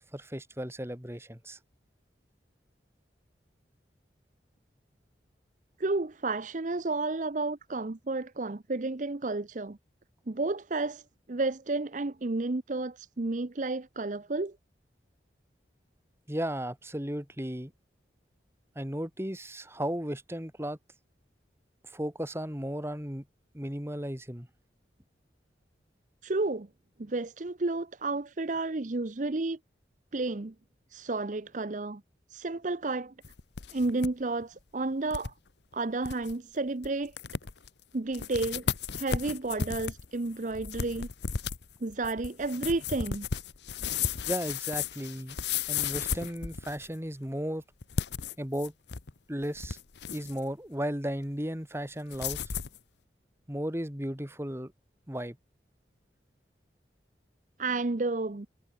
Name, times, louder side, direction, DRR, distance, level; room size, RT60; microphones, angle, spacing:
voice 1, 0.0-1.6 16.3-17.7 18.7-20.8 21.8-23.2 23.5-24.5 44.3-45.4 45.7-47.6 48.4-48.7 49.3-49.8 50.1-52.5 53.5-54.7 55.1-55.4, equal, 15° right, 3.0 m, -35 dB
voice 2, 5.8-9.8 10.3-11.0 11.3-14.6 26.2-26.7 27.0-29.6 30.1-30.5 30.9-32.0 32.3-33.1 33.7-35.3 35.7-37.1 37.9-41.1 41.8-43.3 57.6-58.5, right 3 dB, 45° right, 0.7 m, -31 dB
sound 1, 33.2-34.1 34.4-34.5 35.1-35.3 35.7-35.8 36.0-36.3 36.8-36.9 37.2-37.7 38.1-47.0 47.8-49.1 49.4-50.4 52.1-52.8, left 6 dB, 75° left, 0.9 m, -34 dB
head